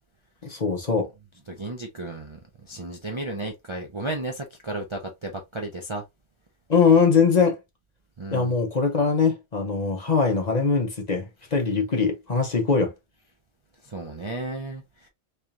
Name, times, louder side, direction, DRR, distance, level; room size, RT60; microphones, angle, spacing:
voice 1, 0.4-1.1 6.7-7.6 8.3-11.2 11.5-12.9, left 5 dB, 40° left, 1.0 m, -21 dB
voice 2, 1.5-6.0 8.2-8.5 13.8-15.1, right 2 dB, 35° right, 0.5 m, -34 dB
3.6 x 3.3 x 2.7 m
omnidirectional pair, 1.2 m